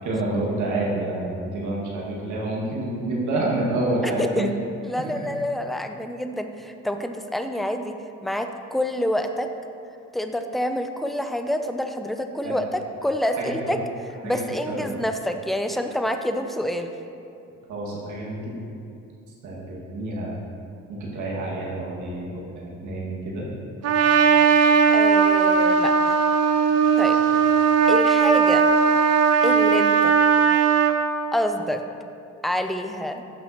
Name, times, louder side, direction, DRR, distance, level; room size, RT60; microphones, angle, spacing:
voice 1, 0.0-4.5 5.0-5.3 12.4-12.6 13.3-13.8 14.2-14.4 14.7-15.0 17.7-18.5 19.4-20.3 20.9-23.5 27.3-27.4, right 2 dB, 75° right, -4 dB, 2.0 m, -28 dB
voice 2, 4.8-8.0 8.2-9.5 10.1-13.8 14.2-16.9 24.9-26.2 27.0-27.2 27.9-28.7 29.4-30.1 31.3-31.8 32.4-33.2, left 1 dB, ahead, 6 dB, 0.5 m, -27 dB
Trumpet, 23.8-31.0, right 6 dB, 55° right, 0.7 m, -18 dB
11.5 x 6.2 x 2.9 m, 2.5 s
cardioid pair, 90°, 30 cm